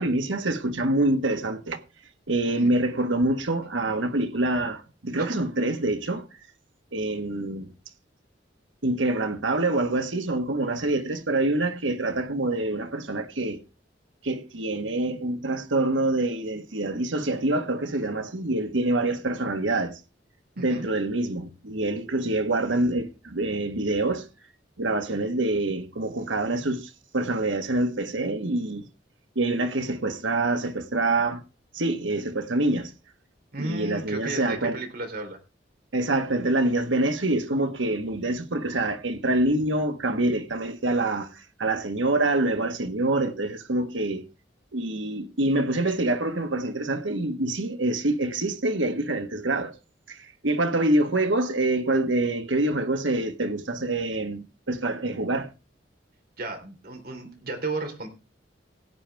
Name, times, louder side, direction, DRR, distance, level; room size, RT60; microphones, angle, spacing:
voice 1, 0.0-1.8 2.3-6.2 6.9-7.7 8.8-13.6 14.2-19.9 20.6-24.3 24.8-28.8 29.3-31.4 31.7-32.9 33.6-34.8 35.9-44.2 44.7-49.7 50.1-55.5, right 2 dB, 85° right, 1.5 m, -26 dB
voice 2, 20.6-20.9 33.5-35.4 56.4-58.1, right 2 dB, 55° right, 3.4 m, -34 dB
17.0 x 9.1 x 3.5 m
head